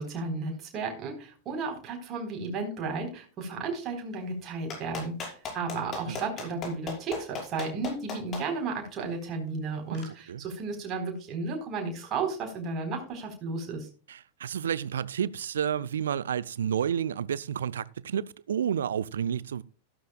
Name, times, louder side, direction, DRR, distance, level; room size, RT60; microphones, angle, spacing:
voice 1, 0.0-13.9, right 4 dB, 30° right, 4.0 m, -33 dB
Clapping, 4.7-8.4 9.9-10.0, left 5 dB, 30° left, 5.6 m, -36 dB
voice 2, 9.9-10.4 14.1-19.6, right 8 dB, 65° right, 0.5 m, -30 dB
14.0 x 12.5 x 2.3 m
figure-of-eight pair, 90°, 0 cm